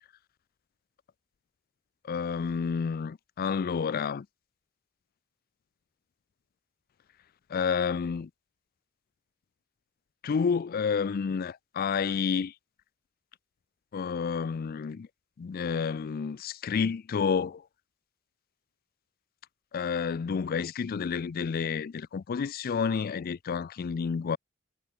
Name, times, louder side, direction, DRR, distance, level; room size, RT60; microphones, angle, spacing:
voice 1, 2.0-4.3 7.5-8.3 10.2-12.5 13.9-15.1 15.4-17.6 19.7-24.4, left 6 dB, 45° left, 0.4 m, -30 dB
head